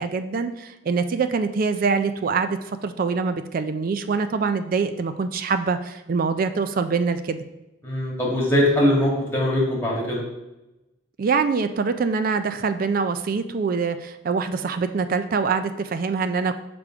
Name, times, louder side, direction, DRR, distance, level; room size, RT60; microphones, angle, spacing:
voice 1, 0.0-7.4 11.2-16.6, right 5 dB, 45° right, 9 dB, 0.3 m, -24 dB
voice 2, 7.8-10.2, left 1 dB, 10° left, -5 dB, 1.9 m, -21 dB
6.7 x 3.5 x 4.8 m, 0.95 s
head